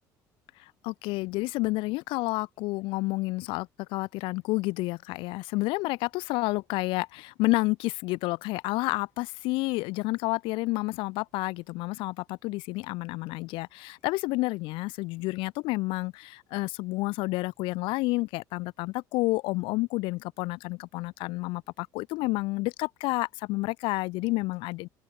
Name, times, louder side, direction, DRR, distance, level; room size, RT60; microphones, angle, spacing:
voice 1, 0.6-24.9, left 22 dB, 80° left, 1.1 m, -30 dB
open air
supercardioid pair, 90°, 9 cm